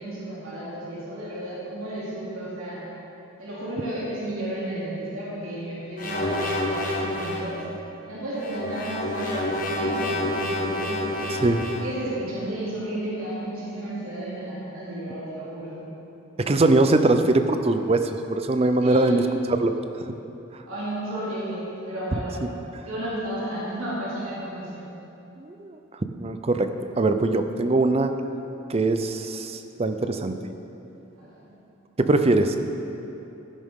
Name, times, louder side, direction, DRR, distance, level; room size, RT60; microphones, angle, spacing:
voice 1, 0.0-2.8 3.4-7.6 8.0-11.3 11.7-15.8 18.8-19.2 20.6-22.4 22.8-24.9 31.2-31.5, right 1 dB, 80° right, -9 dB, 2.9 m, -33 dB
sound 1, 6.0-7.6 8.3-12.0, left 1 dB, 40° left, 1.3 m, -28 dB
voice 2, 11.3-11.6 16.4-19.2 19.6-19.7 25.4-25.8 26.2-28.1 28.7-30.4 32.0-32.6, right 2 dB, 30° right, 8 dB, 0.5 m, -22 dB
13.0 x 10.5 x 3.7 m, 2.9 s
head